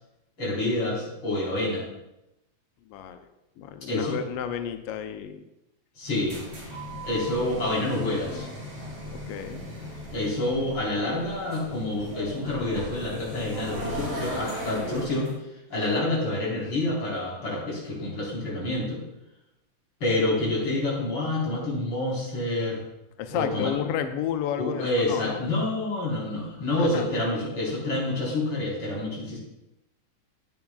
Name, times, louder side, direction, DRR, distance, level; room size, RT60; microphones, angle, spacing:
voice 1, 0.4-1.8 3.9-4.2 6.0-6.4 7.0-8.5 10.1-15.3 15.7-19.0 20.0-22.8 23.3-23.7 24.6-29.4, left 2 dB, 40° left, -6 dB, 4.7 m, -28 dB
voice 2, 2.9-3.3 3.6-5.5 9.3-10.0 23.2-25.4 26.8-27.1, left 9 dB, 85° left, 8 dB, 1.3 m, -32 dB
sound 1, 6.0-15.3, equal, 50° right, 5.0 m, -37 dB
16.0 x 9.4 x 2.3 m, 0.90 s
omnidirectional pair, 3.4 m